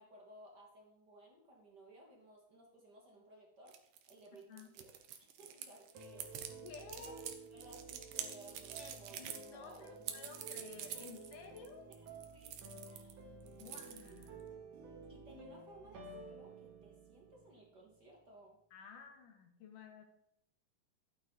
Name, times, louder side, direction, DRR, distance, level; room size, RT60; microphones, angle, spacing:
voice 1, 0.0-3.7 4.1-6.6 6.9-7.2 7.5-9.2 9.5-10.2 11.9-13.3 14.1-14.4 15.1-18.6, right 1 dB, 40° right, -1 dB, 2.1 m, -59 dB
sound 1, 3.7-13.1 13.4-14.4, right 9 dB, 65° right, 1.8 m, -47 dB
sound 2, 5.9-18.1, right 3 dB, 80° right, 3.0 m, -53 dB
voice 2, 6.6-7.3 8.8-11.9 13.6-14.4 18.7-20.0, left 5 dB, 85° left, 4 dB, 3.1 m, -53 dB
12.0 x 9.0 x 3.9 m, 0.79 s
omnidirectional pair, 3.6 m